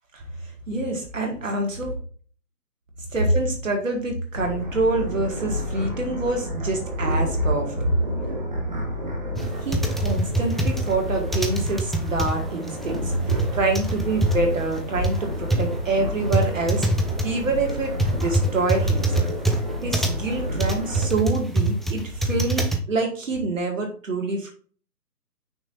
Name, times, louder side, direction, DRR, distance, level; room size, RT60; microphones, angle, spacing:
voice 1, 0.1-1.9 3.1-7.9 9.7-16.9 17.2-24.5, right 2 dB, 50° right, 2 dB, 2.1 m, -26 dB
sound 1, 4.3-21.1, equal, 25° right, 1.0 m, -30 dB
sound 2, 9.3-22.8, right 1 dB, ahead, 0.4 m, -25 dB
6.1 x 4.0 x 4.1 m, 0.42 s
figure-of-eight pair, 165°, 49 cm